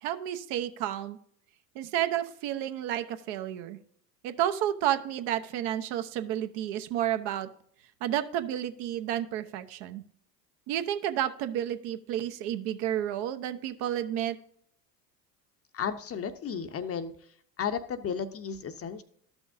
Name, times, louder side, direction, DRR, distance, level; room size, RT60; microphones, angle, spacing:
voice 1, 0.0-1.2 1.7-3.8 4.2-7.5 8.0-10.0 10.7-14.4, right 11 dB, 55° right, 9 dB, 1.0 m, -31 dB
voice 2, 15.7-17.1 17.6-19.0, left 7 dB, 30° left, 10 dB, 0.8 m, -33 dB
13.0 x 6.2 x 2.6 m, 0.64 s
hypercardioid pair, 80°, 49 cm